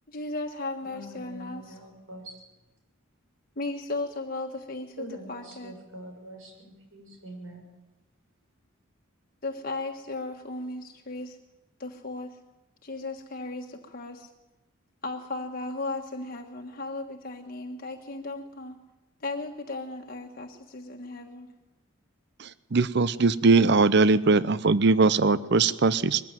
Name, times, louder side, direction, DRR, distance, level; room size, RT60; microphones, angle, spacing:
voice 1, 0.1-1.8 3.6-5.7 9.4-11.4 11.8-12.4 12.8-14.3 15.0-18.8 19.2-21.5, left 2 dB, 45° left, 2 dB, 1.4 m, -36 dB
voice 2, 0.8-2.4 5.0-7.6, right 1 dB, 75° right, 3 dB, 6.8 m, -44 dB
voice 3, 22.4-26.2, right 3 dB, 50° right, 17 dB, 0.6 m, -21 dB
21.5 x 15.5 x 9.0 m, 1.0 s
head